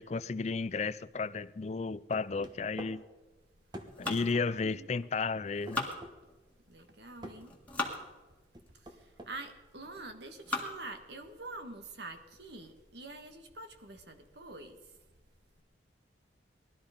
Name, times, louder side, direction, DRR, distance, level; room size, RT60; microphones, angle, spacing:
voice 1, 0.0-3.0 4.0-5.9, left 4 dB, 35° left, 0.4 m, -33 dB
sound 1, 2.1-3.0 3.7-4.5 5.7-6.2 7.2-7.4 8.5-9.3, right 1 dB, 25° right, 1.1 m, -46 dB
sound 2, 3.9-5.1 5.5-6.6 7.3-8.0 8.7-8.8 9.5-9.8 10.3-10.9 11.4-11.5 11.9-12.0 12.4-12.7, left 2 dB, 10° left, 1.8 m, -39 dB
voice 2, 4.0-4.9 6.7-7.5 8.7-14.8, right 2 dB, 65° right, 1.5 m, -46 dB
19.5 x 12.5 x 5.1 m
head